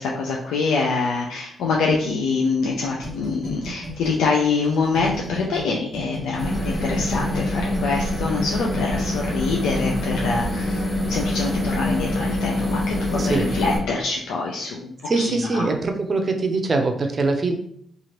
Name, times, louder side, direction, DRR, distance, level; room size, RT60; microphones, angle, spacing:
voice 1, 0.0-15.7, left 4 dB, 85° left, -1 dB, 0.3 m, -25 dB
sound 1, 3.0-5.6 5.9-8.8, left 1 dB, 30° left, 1.2 m, -34 dB
sound 2, 6.4-13.8, left 1 dB, 50° left, 1.4 m, -25 dB
voice 2, 15.0-17.5, right 3 dB, 40° right, 5 dB, 0.5 m, -22 dB
2.8 x 2.5 x 3.0 m, 0.67 s
cardioid pair, 65°, 0 cm